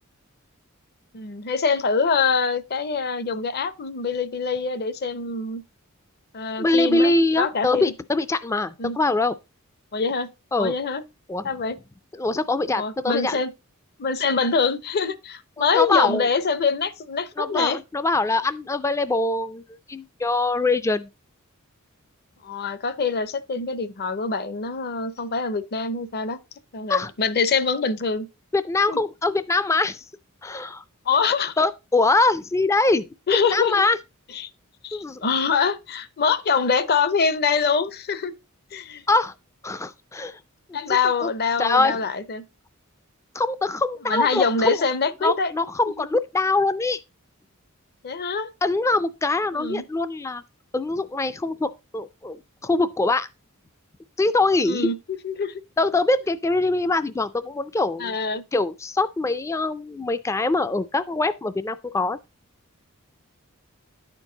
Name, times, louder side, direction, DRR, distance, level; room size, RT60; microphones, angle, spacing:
voice 1, 1.1-5.6 6.3-7.9 8.8-9.0 9.9-10.3 10.6-11.0 11.4-11.8 12.8-13.5 14.0-17.8 22.4-26.4 26.7-28.3 28.9-29.0 31.1-31.6 33.3-33.7 34.3-34.5 34.8-38.3 38.7-39.0 40.7-42.4 44.1-45.5 46.0-46.1 48.0-48.5 49.5-49.8 54.6-55.6 58.0-58.4, left 5 dB, 45° left, 0.6 m, -24 dB
voice 2, 6.6-9.4 10.5-10.7 11.3-11.5 12.1-13.4 15.6-16.3 17.4-19.6 19.9-21.1 26.9-27.1 28.5-30.0 30.4-30.8 31.6-33.1 33.5-34.0 34.9-35.2 39.1-39.3 39.6-40.4 40.7-41.3 41.6-42.0 43.3-44.8 45.2-47.0 48.6-50.4 50.7-53.3 54.2-54.9 55.8-58.1 58.5-62.2, left 2 dB, 15° left, 0.3 m, -23 dB
10.0 x 4.5 x 3.8 m
head